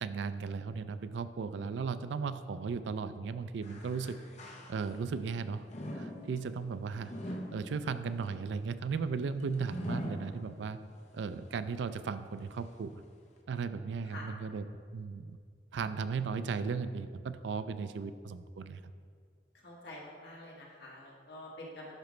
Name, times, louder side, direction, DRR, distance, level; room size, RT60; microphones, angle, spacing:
voice 1, 0.0-4.2 4.4-5.7 5.9-10.8 11.1-12.9 13.5-14.6 14.9-15.4 15.7-18.8, right 5 dB, 75° right, 12 dB, 0.4 m, -36 dB
sound 1, 3.6-5.2 5.7-11.0 11.4-11.5 12.4-12.5, equal, 40° left, 0.7 m, -43 dB
voice 2, 19.5-21.9, left 1 dB, 65° left, -4 dB, 1.6 m, -47 dB
11.5 x 5.0 x 3.2 m, 2.1 s
head